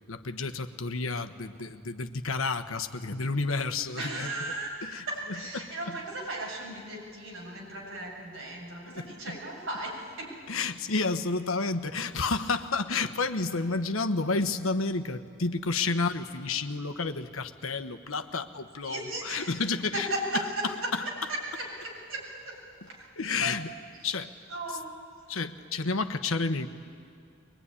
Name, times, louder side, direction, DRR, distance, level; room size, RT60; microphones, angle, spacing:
voice 1, 0.1-4.3 4.8-5.0 5.5-6.0 8.9-9.4 10.5-20.1 23.2-23.7 24.0-24.3 25.3-26.7, left 3 dB, 85° left, 9 dB, 1.2 m, -30 dB
voice 2, 3.9-4.7 5.1-10.4 18.8-19.6 19.9-23.1 23.4-23.5 24.0-24.1 24.5-25.0, right 1 dB, 75° right, -2 dB, 7.6 m, -36 dB
23.5 x 21.5 x 9.9 m, 2.3 s
head